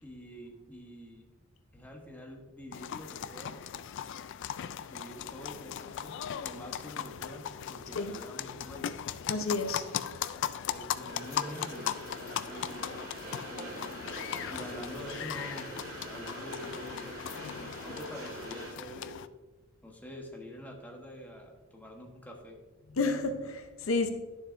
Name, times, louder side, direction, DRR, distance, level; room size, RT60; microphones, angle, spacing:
voice 1, 0.0-1.4 1.7-3.6 4.9-6.2 6.4-9.0 10.3-13.7 14.5-15.7 16.1-19.2 19.8-22.6, equal, 10° left, 1.1 m, -46 dB
sound 1, 2.7-19.3, left 9 dB, 60° left, 0.3 m, -38 dB
voice 2, 9.3-9.8 22.9-24.1, left 3 dB, 75° left, 0.7 m, -30 dB
Train, 11.1-18.7, right 2 dB, 85° right, 2.0 m, -44 dB
10.5 x 7.1 x 2.6 m
head